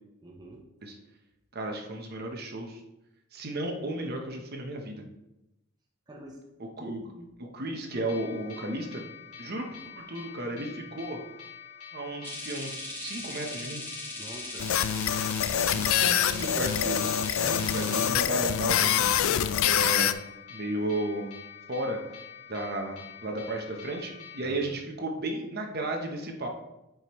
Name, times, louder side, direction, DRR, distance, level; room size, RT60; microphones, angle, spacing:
voice 1, 0.2-0.7 6.1-6.4 6.8-7.3 14.2-14.7 24.4-24.6, right 1 dB, 20° right, -1 dB, 0.8 m, -46 dB
voice 2, 1.5-2.8 3.3-5.0 6.8-7.0 7.4-9.0 9.4-9.7 10.0-11.2 11.9-13.8 15.7-19.1 19.6-20.2 20.5-21.3 21.7-22.0 22.5-26.5, right 1 dB, 45° right, 3 dB, 1.0 m, -34 dB
sound 1, 7.9-24.6, left 8 dB, 90° left, 1.3 m, -47 dB
sound 2, 12.2-18.1, left 2 dB, 10° left, 1.1 m, -39 dB
sound 3, 14.6-20.1, left 9 dB, 65° left, 0.3 m, -25 dB
9.2 x 5.2 x 3.1 m, 0.93 s
head